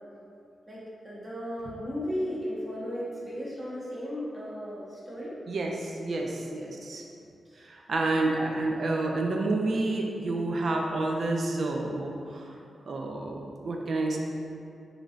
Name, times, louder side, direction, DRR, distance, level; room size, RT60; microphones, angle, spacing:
voice 1, 0.7-5.3 6.3-6.7 7.4-7.6 7.9-8.3, equal, 25° right, -8 dB, 1.0 m, -36 dB
voice 2, 5.5-7.0 7.6-12.5 12.9-13.4 13.6-14.2, right 2 dB, 65° right, 1 dB, 0.3 m, -29 dB
3.0 x 2.5 x 2.4 m, 2.5 s
cardioid pair, 50°, 0 cm